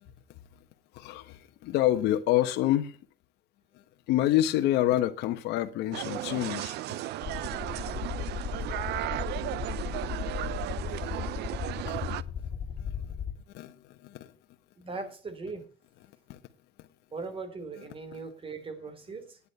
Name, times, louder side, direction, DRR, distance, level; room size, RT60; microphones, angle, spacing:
voice 1, 0.9-3.0 4.1-7.0 10.9-11.0 11.9-12.0 12.8-12.9 13.5-14.3 16.3-16.4, left 13 dB, 90° left, 1.0 m, -27 dB
sound 1, 5.9-12.2, right 15 dB, 80° right, 0.7 m, -35 dB
sound 2, 7.2-13.3, left 8 dB, 50° left, 2.3 m, -36 dB
voice 2, 14.8-15.7 17.1-19.4, right 4 dB, 30° right, 3.1 m, -39 dB
10.5 x 9.7 x 5.4 m
cardioid pair, 110°, 17 cm